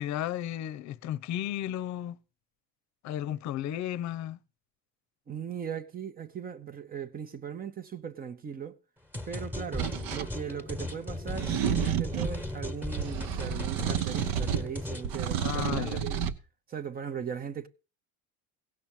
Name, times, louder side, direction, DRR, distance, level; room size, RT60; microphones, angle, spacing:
voice 1, 0.0-2.2 3.0-4.4 15.4-16.0, left 12 dB, 45° left, 0.8 m, -34 dB
voice 2, 5.3-8.8 9.3-16.2 16.7-17.7, right 7 dB, 25° right, 0.8 m, -38 dB
sound 1, 9.1-15.1, left 2 dB, 5° right, 1.4 m, -37 dB
sound 2, 9.8-10.3 11.3-12.4 13.0-14.7 15.0-16.4, right 9 dB, 60° right, 1.0 m, -30 dB
17.0 x 5.9 x 7.1 m
cardioid pair, 145°, 39 cm